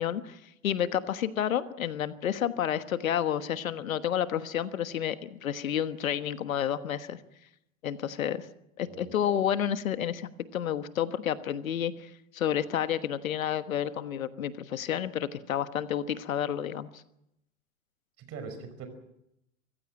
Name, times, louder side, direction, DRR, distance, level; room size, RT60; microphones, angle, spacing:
voice 1, 0.0-7.2 7.8-8.5 8.8-17.0, left 10 dB, 75° left, 13 dB, 1.4 m, -30 dB
voice 2, 18.2-18.9, right 5 dB, 35° right, 8 dB, 5.4 m, -42 dB
24.5 x 15.5 x 8.9 m, 0.84 s
hypercardioid pair, 100°, 41 cm